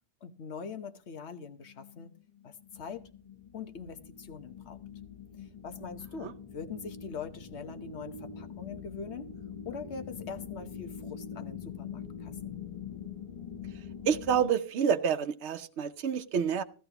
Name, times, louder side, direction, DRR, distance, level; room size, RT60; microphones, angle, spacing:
voice 1, 0.2-2.1 2.4-3.1 3.5-4.8 5.4-9.3 9.6-12.5, left 5 dB, 80° left, 1.3 m, -43 dB
sound 1, 1.7-14.5, left 7 dB, 35° left, 1.1 m, -44 dB
voice 2, 14.1-16.6, right 7 dB, 80° right, 1.0 m, -28 dB
15.5 x 12.5 x 2.9 m
omnidirectional pair, 1.1 m